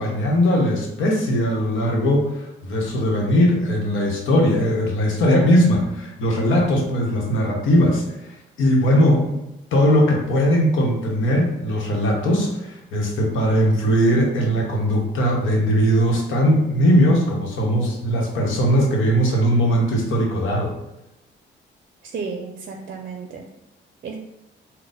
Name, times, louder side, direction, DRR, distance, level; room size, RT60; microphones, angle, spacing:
voice 1, 0.0-8.0 8.6-9.4 9.7-20.7, equal, 80° left, 0 dB, 1.0 m, -19 dB
voice 2, 22.0-23.5 24.0-24.2, right 5 dB, 50° right, 3 dB, 0.5 m, -32 dB
4.0 x 2.2 x 3.9 m, 0.89 s
cardioid pair, 90°, 20 cm